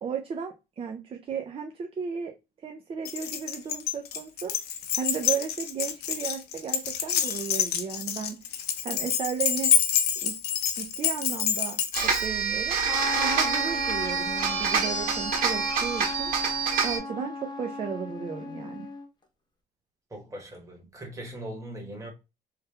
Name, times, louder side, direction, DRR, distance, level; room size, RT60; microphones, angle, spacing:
voice 1, 0.0-8.4 8.8-9.7 10.2-10.4 10.7-12.8 13.1-18.9, right 6 dB, 35° right, 0.5 m, -35 dB
Keys jangling, 3.0-12.3, left 8 dB, 70° left, 0.6 m, -27 dB
sound 1, 11.9-17.0, right 6 dB, 60° right, 1.7 m, -27 dB
Trumpet, 12.9-19.1, left 2 dB, 25° left, 0.8 m, -35 dB
voice 2, 20.1-22.1, right 1 dB, 20° right, 1.3 m, -40 dB
3.2 x 2.2 x 3.3 m
cardioid pair, 110°, 17 cm